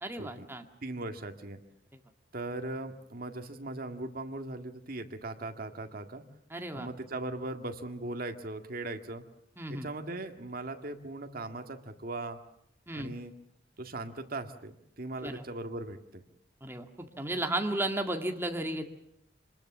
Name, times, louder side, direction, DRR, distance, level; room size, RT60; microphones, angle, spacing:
voice 1, 0.0-0.6 6.5-6.9 9.6-9.9 12.9-13.1 15.2-15.4 16.6-18.8, right 1 dB, 15° right, 4 dB, 1.9 m, -34 dB
voice 2, 0.8-1.6 2.3-6.2 6.7-9.2 9.7-12.4 12.9-13.3 13.8-16.2, right 2 dB, 55° right, 5 dB, 1.9 m, -39 dB
26.0 x 20.5 x 7.3 m, 0.75 s
head